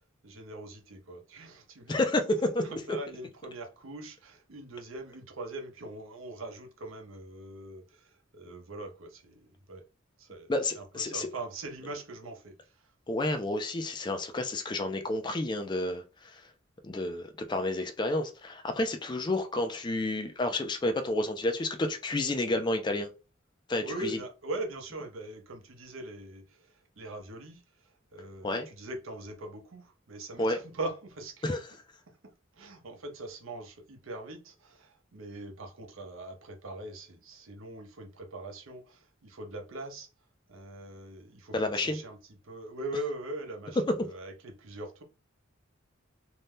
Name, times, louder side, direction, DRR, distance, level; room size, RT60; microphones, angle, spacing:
voice 1, 0.2-9.8 10.2-12.9 23.8-31.6 32.1-40.1 40.5-45.0, right 2 dB, 80° right, 0.7 m, -42 dB
voice 2, 1.9-2.6 10.5-11.3 13.1-16.5 16.8-23.1 23.7-24.2 28.4-28.7 30.4-30.6 31.4-31.6 41.5-42.0, left 2 dB, 20° left, 0.3 m, -30 dB
2.7 x 2.2 x 3.4 m
head